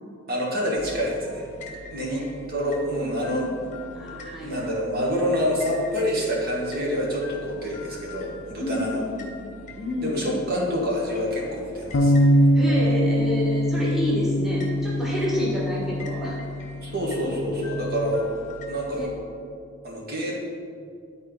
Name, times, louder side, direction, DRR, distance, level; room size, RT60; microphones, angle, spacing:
voice 1, 0.3-1.4 1.9-3.5 4.4-9.0 10.0-12.1 15.3-15.5 16.8-18.4 18.7-19.1 19.8-20.4, equal, 45° right, -4 dB, 1.4 m, -27 dB
sound 1, 0.8-19.0, equal, 35° left, 0.9 m, -44 dB
voice 2, 3.9-4.7 8.6-9.3 9.8-10.4 12.2-16.4 18.9-19.1, equal, ahead, -6 dB, 1.4 m, -29 dB
sound 2, 11.9-18.2, equal, 60° left, 0.5 m, -23 dB
10.5 x 4.2 x 3.9 m, 2.3 s
head